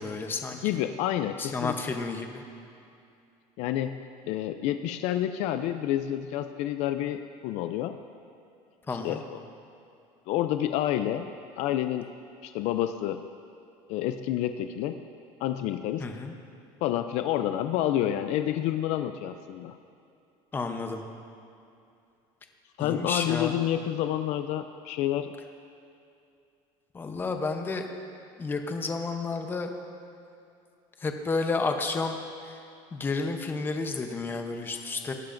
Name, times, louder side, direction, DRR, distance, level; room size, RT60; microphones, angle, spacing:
voice 1, 0.0-0.6 1.4-2.4 8.9-9.2 16.0-16.3 20.5-21.0 22.8-23.6 26.9-27.8 28.4-29.7 31.0-32.2 32.9-35.1, left 3 dB, 15° left, 5 dB, 0.7 m, -31 dB
voice 2, 0.6-2.0 3.6-8.0 9.0-9.4 10.3-11.3 11.6-12.1 12.4-13.2 13.9-15.0 15.4-16.1 16.8-19.8 22.8-25.3, left 12 dB, 60° left, 9 dB, 0.4 m, -29 dB
18.5 x 10.5 x 2.6 m, 2.6 s
cardioid pair, 150°, 13 cm